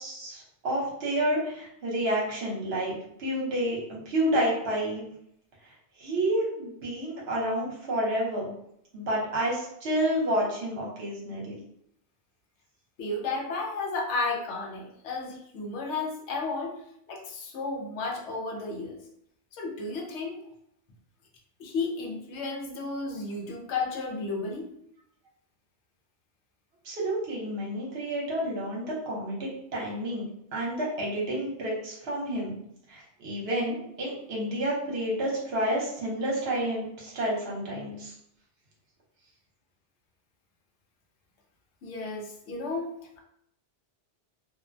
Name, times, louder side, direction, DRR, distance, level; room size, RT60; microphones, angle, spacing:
voice 1, 0.0-5.0 6.0-8.5 8.9-11.6 26.8-32.5 32.9-38.1, right 1 dB, 60° right, -4 dB, 1.0 m, -30 dB
voice 2, 13.0-19.0 19.5-20.4 21.6-24.7 41.8-43.2, left 3 dB, 75° left, 2 dB, 0.9 m, -33 dB
2.5 x 2.1 x 2.5 m, 0.74 s
omnidirectional pair, 1.2 m